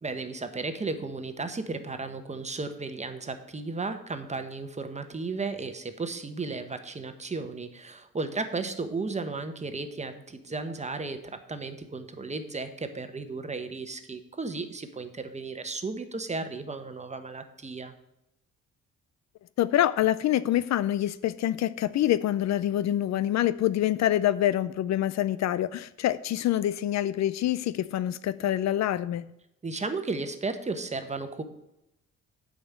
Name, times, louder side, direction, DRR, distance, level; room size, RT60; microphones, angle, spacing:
voice 1, 0.0-17.9 29.6-31.4, right 3 dB, 25° right, 1.1 m, -34 dB
voice 2, 19.6-29.3, left 12 dB, 65° left, 0.5 m, -26 dB
8.8 x 5.2 x 7.3 m
cardioid pair, 90°, 30 cm